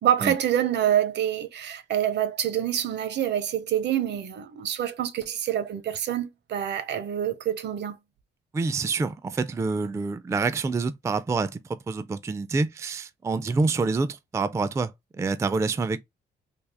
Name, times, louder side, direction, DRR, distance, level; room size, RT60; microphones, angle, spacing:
voice 1, 0.0-8.0, right 10 dB, 60° right, 0.7 m, -26 dB
voice 2, 8.5-16.0, right 4 dB, 15° right, 0.3 m, -27 dB
3.5 x 2.3 x 3.3 m
cardioid pair, 90°, 20 cm